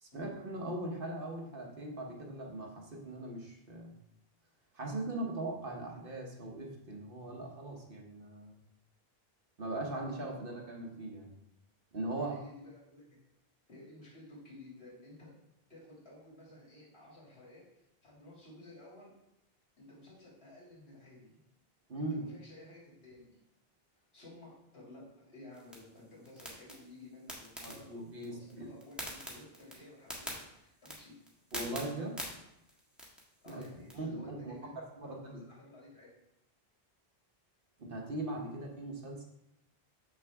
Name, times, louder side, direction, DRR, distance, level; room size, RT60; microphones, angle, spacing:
voice 1, 0.0-3.9 4.7-8.5 9.6-11.3 11.9-12.4 21.9-22.3 27.6-28.7 31.5-32.2 33.5-33.6 33.9-35.4 37.8-39.3, right 2 dB, 60° right, 1 dB, 1.3 m, -40 dB
voice 2, 12.1-13.2 13.7-15.3 15.7-19.1 19.8-21.3 22.0-23.4 23.9-27.9 28.3-31.2 33.4-36.1, left 2 dB, 75° left, -6 dB, 3.0 m, -54 dB
sound 1, 25.5-33.9, equal, ahead, 1.6 m, -47 dB
7.1 x 6.2 x 3.5 m, 0.85 s
omnidirectional pair, 1.0 m